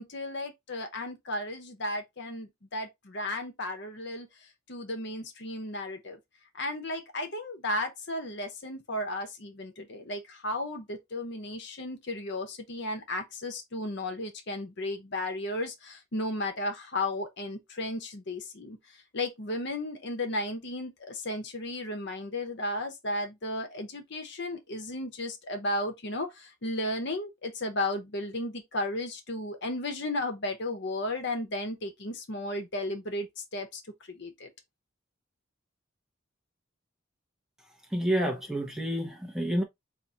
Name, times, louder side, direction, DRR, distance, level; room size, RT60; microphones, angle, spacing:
voice 1, 0.0-4.3 4.7-6.2 6.5-18.8 19.1-33.8 34.1-34.5, left 1 dB, 55° left, 0.9 m, -34 dB
voice 2, 37.9-39.6, right 1 dB, 5° right, 0.8 m, -29 dB
4.1 x 2.5 x 4.1 m
head